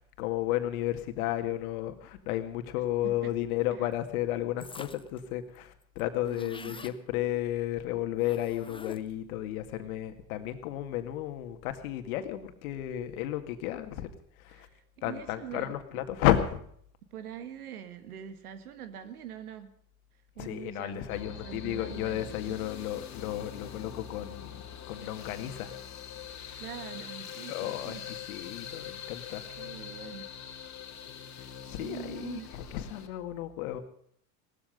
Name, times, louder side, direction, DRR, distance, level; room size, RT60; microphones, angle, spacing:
voice 1, 0.0-14.1 14.4-14.7 15.0-16.6 20.4-25.7 27.5-29.4 31.6-33.8, left 13 dB, 75° left, 8 dB, 2.2 m, -33 dB
sound 1, 4.6-5.2 5.5-5.6 5.8-7.0 8.2-9.2, left 4 dB, 10° left, 0.9 m, -47 dB
voice 2, 6.3-6.9 14.5-16.0 17.1-19.7 20.4-22.6 26.6-28.0 29.6-30.3 31.3-32.5, right 9 dB, 90° right, 11 dB, 1.9 m, -44 dB
sound 2, 21.1-33.1, left 8 dB, 40° left, 2.6 m, -43 dB
17.5 x 13.5 x 5.3 m, 0.63 s
hypercardioid pair, 85°, 43 cm